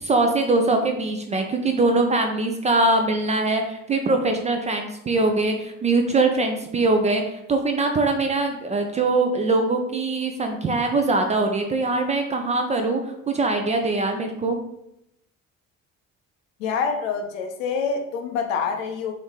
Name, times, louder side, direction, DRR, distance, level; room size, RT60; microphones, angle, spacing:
voice 1, 0.0-14.6, right 2 dB, 20° right, 4 dB, 0.3 m, -22 dB
voice 2, 16.6-19.1, left 5 dB, 70° left, 4 dB, 0.6 m, -26 dB
3.8 x 3.0 x 3.2 m, 0.84 s
figure-of-eight pair, 50°, 41 cm